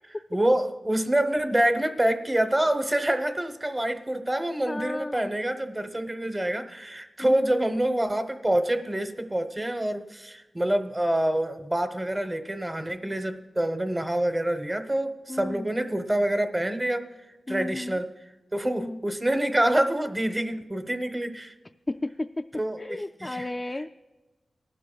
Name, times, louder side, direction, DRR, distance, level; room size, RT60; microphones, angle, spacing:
voice 1, 0.3-17.0 17.5-18.1 18.5-21.5 22.5-22.8 23.2-23.4, right 1 dB, 15° right, 9 dB, 0.9 m, -26 dB
voice 2, 4.7-5.3 7.2-7.7 15.3-15.7 17.5-18.0 18.7-19.0 21.9-22.4 22.8-23.9, left 2 dB, 20° left, 5 dB, 0.3 m, -33 dB
19.0 x 12.0 x 2.3 m, 1.1 s
wide cardioid pair, 85°, 0 cm